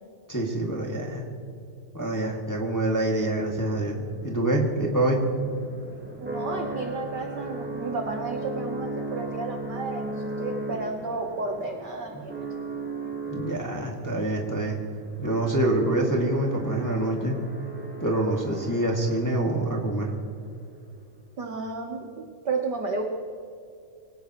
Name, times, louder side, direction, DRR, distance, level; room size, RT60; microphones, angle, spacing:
voice 1, 0.3-1.2 1.9-5.2 12.1-12.2 13.3-14.8 15.2-17.4 18.0-20.1, right 1 dB, 10° left, -1 dB, 1.4 m, -26 dB
sound 1, 3.6-19.7, right 2 dB, 10° right, 0.5 m, -37 dB
voice 2, 6.2-12.3 21.4-23.0, right 3 dB, 60° right, 3 dB, 1.1 m, -32 dB
24.5 x 18.0 x 3.1 m, 2.5 s
omnidirectional pair, 3.5 m